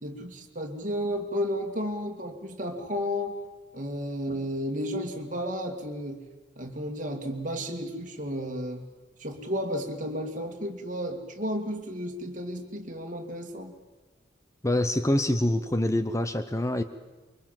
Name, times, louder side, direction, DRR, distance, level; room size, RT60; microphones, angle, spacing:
voice 1, 0.0-3.4 3.7-6.2 6.6-8.8 9.2-13.7, equal, 40° right, 3 dB, 2.5 m, -32 dB
voice 2, 14.6-16.8, left 1 dB, 15° left, 10 dB, 0.8 m, -25 dB
24.5 x 23.5 x 7.6 m, 1.2 s
head